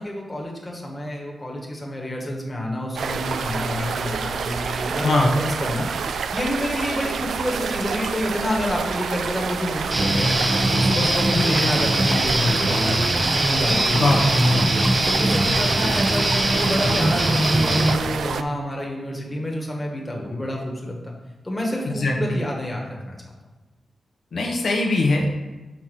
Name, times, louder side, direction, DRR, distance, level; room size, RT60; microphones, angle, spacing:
voice 1, 0.0-10.4 10.7-13.0 13.3-14.2 15.0-21.1 21.4-23.2, left 1 dB, 15° left, -2 dB, 1.6 m, -28 dB
sound 1, 3.0-18.4, right 6 dB, 85° right, 0.4 m, -28 dB
Guitar, 9.9-17.9, right 1 dB, 20° right, 0.8 m, -21 dB
voice 2, 13.9-14.6 21.9-22.4 24.3-25.3, left 2 dB, 70° left, -1 dB, 1.3 m, -21 dB
6.0 x 4.3 x 6.2 m, 1.2 s
cardioid pair, 85°, 0 cm